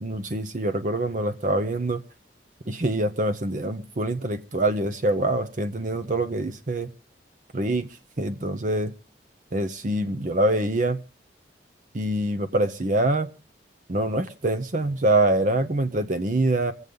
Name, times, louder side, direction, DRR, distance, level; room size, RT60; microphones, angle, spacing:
voice 1, 0.0-2.0 2.7-6.9 7.5-7.9 8.2-8.9 9.5-11.0 11.9-13.3 13.9-16.7, right 1 dB, 45° right, 11 dB, 0.7 m, -25 dB
24.5 x 8.1 x 5.3 m, 0.36 s
head